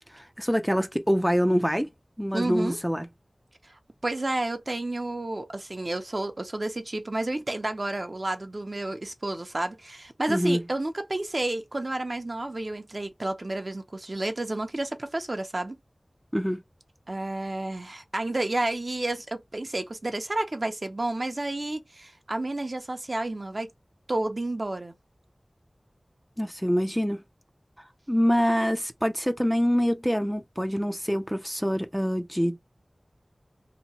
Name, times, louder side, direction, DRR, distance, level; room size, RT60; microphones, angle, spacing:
voice 1, 0.1-1.9 2.2-3.1 10.3-10.6 16.3-16.6 26.4-27.2 28.1-32.6, equal, ahead, 0.4 m, -25 dB
voice 2, 2.3-2.8 3.6-3.7 4.0-15.8 17.1-23.7 24.1-24.9, right 2 dB, 50° right, 0.6 m, -31 dB
2.9 x 2.2 x 2.7 m
wide cardioid pair, 55°, 0 cm